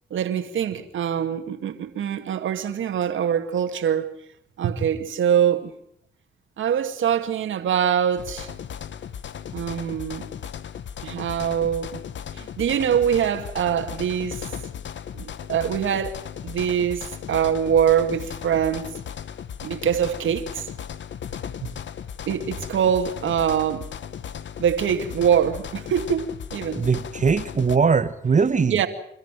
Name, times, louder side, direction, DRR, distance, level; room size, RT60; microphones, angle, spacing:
voice 1, 0.1-4.1 4.6-5.7 6.6-8.5 9.5-10.3 11.0-12.0 12.3-14.5 15.1-16.2 16.4-18.9 19.6-20.7 22.3-23.9 24.6-26.8 28.7-28.9, right 8 dB, 75° right, 2.3 m, -24 dB
sound 1, 8.2-27.8, left 8 dB, 65° left, 1.2 m, -36 dB
voice 2, 26.8-28.8, right 5 dB, 40° right, 1.1 m, -20 dB
29.0 x 13.5 x 9.2 m
supercardioid pair, 55°, 20 cm